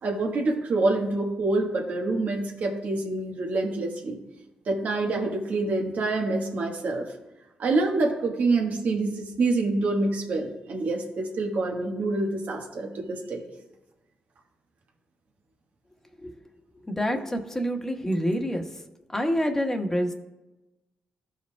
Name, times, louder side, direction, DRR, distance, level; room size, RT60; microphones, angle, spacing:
voice 1, 0.0-4.2 4.7-7.0 7.6-13.4, right 2 dB, 65° right, 2 dB, 1.4 m, -26 dB
voice 2, 16.9-18.6 19.1-20.1, equal, 15° left, 3 dB, 1.3 m, -27 dB
14.0 x 5.3 x 2.3 m, 1.0 s
supercardioid pair, 55°, 3 cm